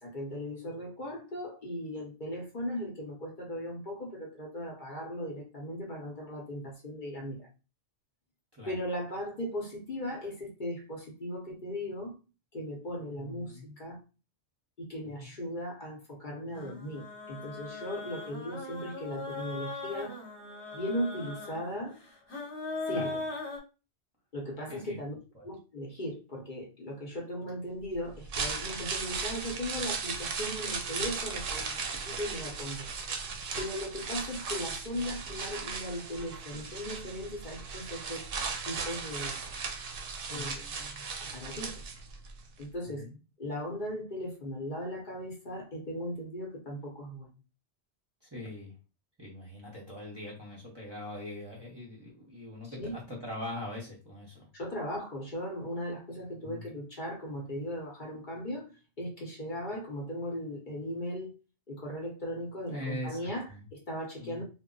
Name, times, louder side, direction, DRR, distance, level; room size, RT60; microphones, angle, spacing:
voice 1, 0.0-7.5 8.6-12.1 12.5-14.0 14.8-20.2 20.7-22.0 22.9-23.2 24.3-25.1 25.4-33.3 33.6-38.2 38.7-39.4 40.3-40.6 41.2-41.8 42.6-43.1 43.4-47.3 52.6-53.0 54.5-58.7 59.0-61.3 61.7-64.4, equal, 50° left, 0.9 m, -38 dB
voice 2, 13.2-13.7 15.2-15.3 22.9-23.1 24.7-25.0 25.3-25.5 40.3-41.0 43.0-43.1 48.2-48.7 49.2-54.5 56.4-56.7 62.7-63.6 64.2-64.4, left 1 dB, 25° right, 0.7 m, -42 dB
sound 1, 16.5-23.6, left 3 dB, 80° left, 1.1 m, -39 dB
sound 2, 28.1-42.3 42.6-42.7, right 5 dB, 60° right, 0.7 m, -37 dB
2.2 x 2.0 x 3.7 m
omnidirectional pair, 1.1 m